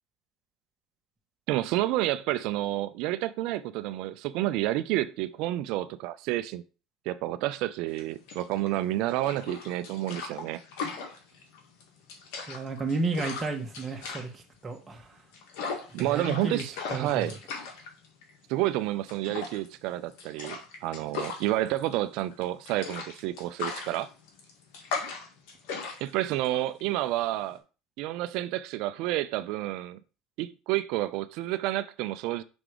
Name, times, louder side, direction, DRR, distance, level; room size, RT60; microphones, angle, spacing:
voice 1, 1.5-6.6 7.1-10.6 15.9-17.4 18.5-24.1 26.0-27.6 28.0-30.0 30.4-32.4, right 15 dB, 65° right, 0.5 m, -30 dB
sound 1, 7.9-27.6, left 5 dB, 75° left, 2.1 m, -39 dB
voice 2, 12.5-15.1 16.0-16.6 16.9-17.3, right 3 dB, 20° right, 1.7 m, -32 dB
6.1 x 3.7 x 5.0 m
supercardioid pair, 110°, 0 cm